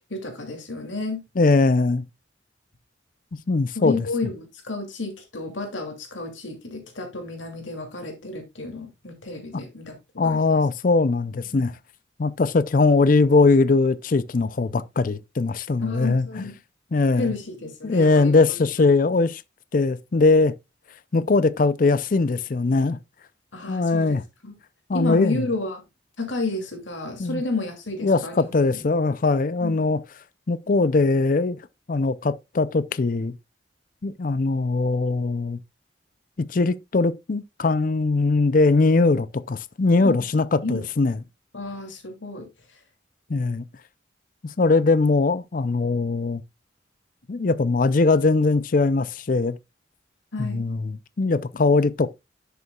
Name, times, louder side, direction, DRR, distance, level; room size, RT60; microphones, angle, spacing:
voice 1, 0.1-1.2 3.7-10.6 11.5-11.7 15.8-16.6 17.2-18.6 19.0-19.1 23.5-24.6 24.9-25.8 26.2-28.8 29.6-29.8 40.0-40.3 40.6-40.9 41.5-42.8 50.3-50.6, left 3 dB, 85° left, 2.6 m, -31 dB
voice 2, 1.4-2.0 3.5-4.0 10.2-11.7 12.2-16.4 16.9-17.3 17.8-19.4 19.7-20.5 21.1-23.0 23.7-24.2 24.9-25.5 27.2-27.4 28.0-30.0 30.5-31.6 31.9-33.3 34.0-35.6 36.4-41.2 43.3-43.6 44.4-46.4 47.3-49.6 50.4-52.1, left 3 dB, 45° left, 0.5 m, -21 dB
11.0 x 6.8 x 2.3 m
head